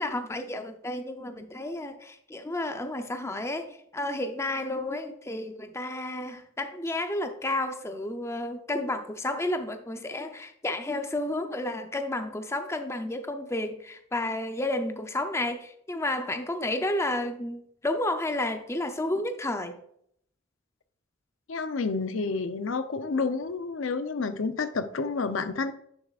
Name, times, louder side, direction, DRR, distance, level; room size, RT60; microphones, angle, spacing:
voice 1, 0.0-19.8, left 1 dB, 15° left, 7 dB, 0.6 m, -31 dB
voice 2, 21.5-25.7, left 4 dB, 75° left, 11 dB, 0.6 m, -29 dB
9.5 x 7.0 x 2.4 m, 0.68 s
head